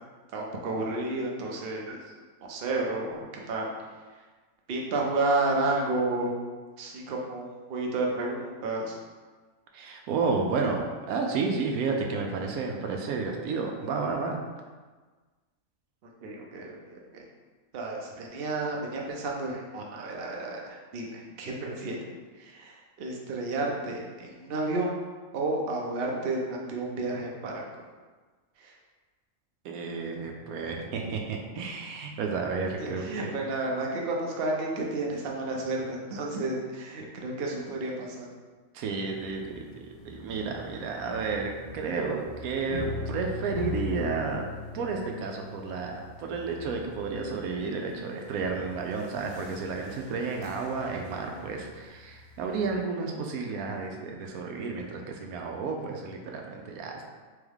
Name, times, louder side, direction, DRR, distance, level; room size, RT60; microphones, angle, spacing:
voice 1, 0.3-2.0 2.4-3.7 4.7-6.3 6.8-9.0 16.2-17.2 17.7-24.9 25.3-27.6 28.6-28.7 32.8-38.3, right 2 dB, 55° right, -1 dB, 0.8 m, -31 dB
voice 2, 9.7-14.4 29.6-33.3 38.7-44.5 44.7-57.0, right 4 dB, 85° right, 2 dB, 1.1 m, -32 dB
sound 1, 39.1-52.8, left 3 dB, 75° left, 1.1 m, -42 dB
3.5 x 3.4 x 3.5 m, 1.4 s
omnidirectional pair, 1.5 m